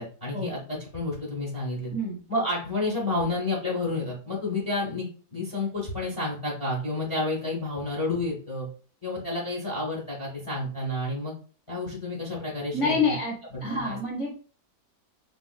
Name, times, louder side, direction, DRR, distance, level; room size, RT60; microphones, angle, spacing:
voice 1, 0.0-1.9 2.3-8.7 9.0-11.3 11.7-13.1 13.5-14.0, left 2 dB, 25° left, -3 dB, 0.7 m, -30 dB
voice 2, 12.7-14.3, left 3 dB, 10° right, -4 dB, 0.5 m, -27 dB
3.7 x 2.5 x 2.2 m, 0.39 s
omnidirectional pair, 1.9 m